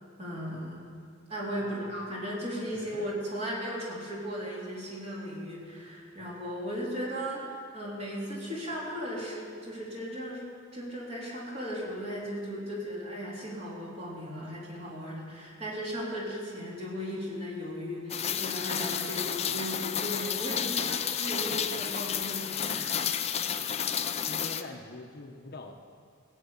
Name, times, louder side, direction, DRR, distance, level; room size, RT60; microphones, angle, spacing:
voice 1, 0.2-0.8 1.3-10.4 10.7-23.1, equal, 30° right, -5 dB, 3.6 m, -36 dB
voice 2, 1.6-1.9 2.7-3.0 22.1-22.2 24.2-25.8, left 2 dB, 50° left, 3 dB, 1.0 m, -44 dB
Rain, 18.1-24.6, left 8 dB, 30° left, 0.5 m, -31 dB
17.0 x 8.5 x 7.2 m, 2.2 s
head